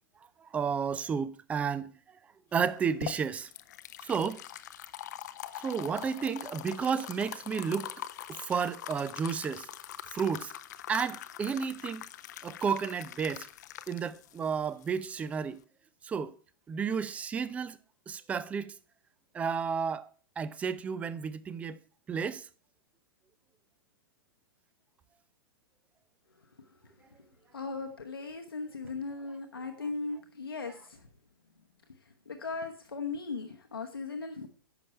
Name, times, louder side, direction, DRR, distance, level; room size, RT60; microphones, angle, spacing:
voice 1, 0.4-1.9 2.5-3.5 4.0-4.4 5.6-7.9 8.3-9.7 10.1-10.5 10.9-12.0 12.4-13.5 13.9-15.6 16.0-16.4 16.7-17.8 18.1-18.7 19.3-20.1 20.4-21.8 22.1-22.5, right 6 dB, 10° right, 0.4 m, -32 dB
sound 1, 2.6-15.6, left 12 dB, 50° left, 0.6 m, -44 dB
voice 2, 27.5-31.1 32.3-34.5, left 4 dB, 75° left, 1.0 m, -38 dB
10.5 x 6.5 x 4.4 m
figure-of-eight pair, 105°, 12 cm